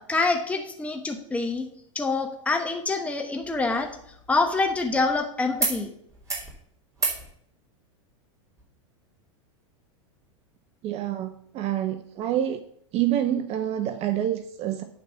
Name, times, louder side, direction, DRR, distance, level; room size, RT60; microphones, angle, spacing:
voice 1, 0.0-1.7 1.9-3.9 4.3-5.9, left 3 dB, 10° left, 4 dB, 0.9 m, -26 dB
sound 1, 3.4-5.2 5.6-5.8 6.1-6.5 6.9-7.2 8.6-8.7, right 3 dB, 20° right, 2.9 m, -32 dB
voice 2, 10.8-12.6 12.9-14.8, right 11 dB, 40° right, 10 dB, 0.6 m, -27 dB
8.7 x 4.0 x 6.9 m, 0.69 s
hypercardioid pair, 105°, 17 cm